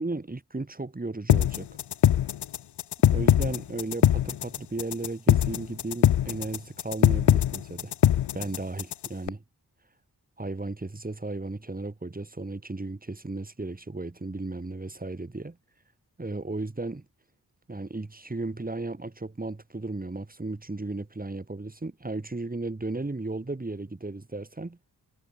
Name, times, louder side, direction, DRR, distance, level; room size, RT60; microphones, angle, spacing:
voice 1, 0.0-1.7 3.1-7.9 8.3-9.4 10.4-15.6 16.2-17.0 17.7-24.8, right 2 dB, 20° right, 2.2 m, -35 dB
sound 1, 1.3-9.3, left 11 dB, 80° left, 0.7 m, -22 dB
wide cardioid pair, 75°, 39 cm